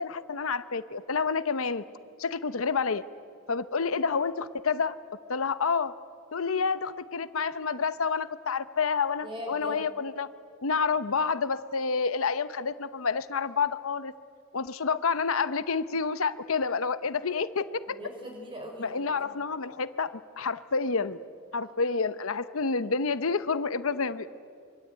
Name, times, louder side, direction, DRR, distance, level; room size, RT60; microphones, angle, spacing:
voice 1, 0.0-1.8 2.2-3.0 3.5-4.9 5.3-5.9 6.3-10.3 10.6-14.1 14.5-18.0 18.8-21.2 21.5-24.3, left 5 dB, 80° left, 13 dB, 0.8 m, -29 dB
voice 2, 9.2-9.8 18.0-19.4, equal, 25° right, 2 dB, 5.5 m, -40 dB
25.0 x 23.5 x 9.0 m, 2.3 s
head